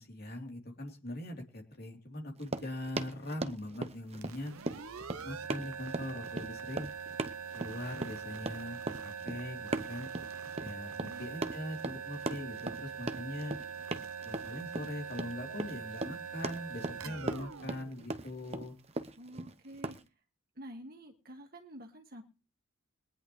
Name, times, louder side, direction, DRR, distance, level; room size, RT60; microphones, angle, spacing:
voice 1, 0.0-4.5 5.2-6.9 7.5-10.1 10.6-13.6 14.2-18.7, left 1 dB, 45° left, 2 dB, 3.2 m, -41 dB
Run, 2.4-20.0, right 2 dB, 30° right, 0.8 m, -39 dB
sound 1, 4.1-18.8, right 6 dB, 90° right, 0.8 m, -43 dB
voice 2, 19.2-20.0 20.6-22.2, right 1 dB, 45° right, 5 dB, 1.9 m, -49 dB
22.0 x 10.5 x 3.1 m, 0.30 s
head